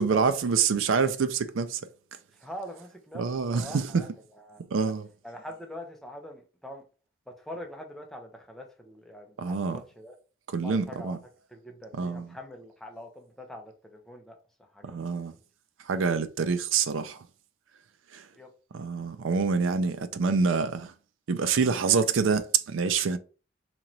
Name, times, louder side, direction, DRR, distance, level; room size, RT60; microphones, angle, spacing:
voice 1, 0.0-1.8 3.1-4.0 4.7-5.1 9.4-9.8 10.5-11.2 11.9-12.3 14.8-15.4 15.9-17.2 18.1-18.2 18.7-20.9 21.3-23.2, right 5 dB, 75° right, 0.4 m, -26 dB
voice 2, 2.4-3.2 3.5-4.1 4.5-4.9 5.2-6.8 7.3-10.1 10.6-11.2 11.5-14.4 14.7-15.0 18.4-18.5, left 1 dB, ahead, 0.7 m, -43 dB
3.0 x 2.9 x 3.8 m
head